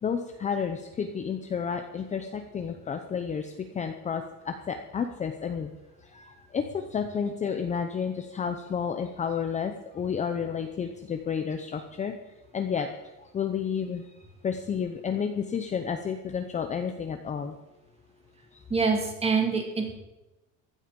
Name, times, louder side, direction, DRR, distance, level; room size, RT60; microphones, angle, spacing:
voice 1, 0.0-5.7 6.0-12.1 12.5-12.9 13.2-14.0 14.4-17.6 18.5-18.6, left 7 dB, 20° left, 6 dB, 0.7 m, -31 dB
voice 2, 18.7-19.9, right 4 dB, 15° right, 2 dB, 2.6 m, -25 dB
16.0 x 12.0 x 5.3 m, 0.99 s
cardioid pair, 170°, 36 cm